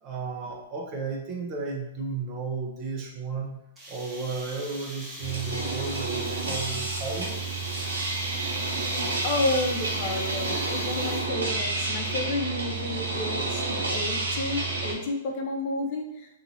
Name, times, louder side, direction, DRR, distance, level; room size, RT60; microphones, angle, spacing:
voice 1, 0.0-3.6 3.9-7.4, right 4 dB, 35° right, 0 dB, 0.9 m, -33 dB
sound 1, 3.8-11.5, right 1 dB, 15° right, 1.2 m, -41 dB
sound 2, 5.2-14.9, right 3 dB, 85° right, 1.3 m, -30 dB
voice 2, 9.2-16.4, left 2 dB, 50° left, 3 dB, 0.6 m, -31 dB
2.8 x 2.7 x 4.0 m, 0.88 s
hypercardioid pair, 115°, 0 cm